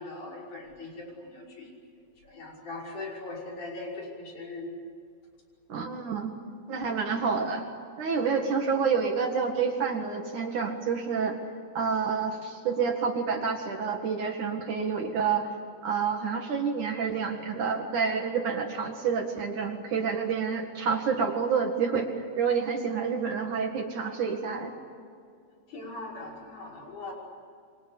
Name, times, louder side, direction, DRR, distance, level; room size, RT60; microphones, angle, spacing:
voice 1, 0.0-1.7 2.2-4.7 8.2-8.4 25.7-27.1, left 2 dB, 45° left, -2 dB, 7.0 m, -40 dB
voice 2, 5.7-6.3 6.7-7.6 8.0-11.4 11.7-15.5 15.8-24.7, right 6 dB, 55° right, 3 dB, 2.9 m, -28 dB
28.0 x 25.0 x 8.6 m, 2.3 s
omnidirectional pair, 5.1 m